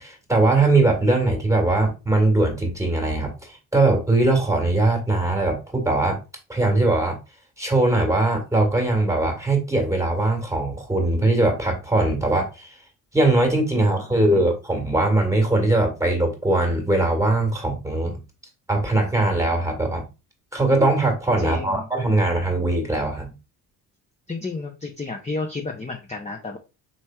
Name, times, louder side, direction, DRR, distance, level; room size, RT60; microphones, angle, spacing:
voice 1, 0.0-6.2 6.5-7.2 7.6-12.7 13.1-18.2 18.7-20.1 20.5-23.3, right 2 dB, 5° right, 1.7 m, -21 dB
voice 2, 13.7-14.5 21.4-21.9 24.3-26.6, left 3 dB, 15° left, 0.8 m, -32 dB
4.3 x 3.2 x 2.3 m
hypercardioid pair, 50°, 49 cm